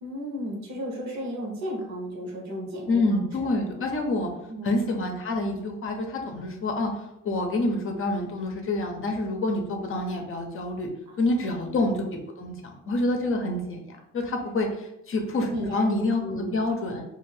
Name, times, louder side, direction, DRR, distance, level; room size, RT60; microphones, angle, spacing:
voice 1, 0.0-3.0 3.9-4.0 4.5-4.7 11.1-11.7 15.4-15.8 16.2-16.6, equal, 65° right, -1 dB, 0.9 m, -34 dB
voice 2, 2.9-4.3 4.6-6.9 7.2-10.9 11.2-12.0 12.4-13.8 14.1-17.0, left 2 dB, 45° left, 3 dB, 0.6 m, -27 dB
2.5 x 2.5 x 3.2 m, 0.83 s
cardioid pair, 90°, 30 cm